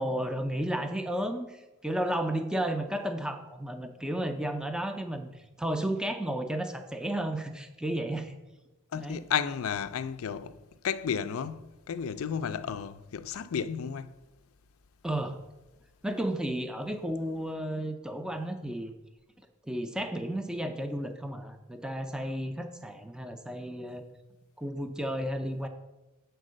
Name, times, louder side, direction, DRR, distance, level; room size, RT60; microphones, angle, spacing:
voice 1, 0.0-8.3 8.9-9.2 15.0-15.4 16.0-18.9 19.6-24.0 24.6-25.7, right 1 dB, 5° right, 0.5 m, -33 dB
voice 2, 8.9-10.6 10.8-14.1, left 7 dB, 70° left, 0.4 m, -32 dB
7.5 x 4.6 x 6.2 m
head